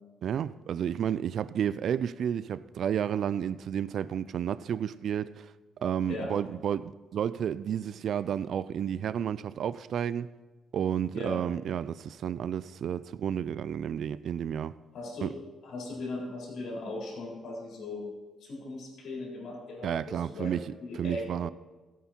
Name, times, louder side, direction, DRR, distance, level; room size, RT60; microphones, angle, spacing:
voice 1, 0.2-5.5 5.8-10.3 10.7-14.8 15.2-15.3 19.8-20.7 20.9-21.5, right 9 dB, 65° right, 0.3 m, -31 dB
voice 2, 14.9-15.3 15.6-18.0 18.4-20.5 20.8-21.3, left 2 dB, 70° left, 4.3 m, -38 dB
15.5 x 8.4 x 4.4 m
cardioid pair, 90°, 0 cm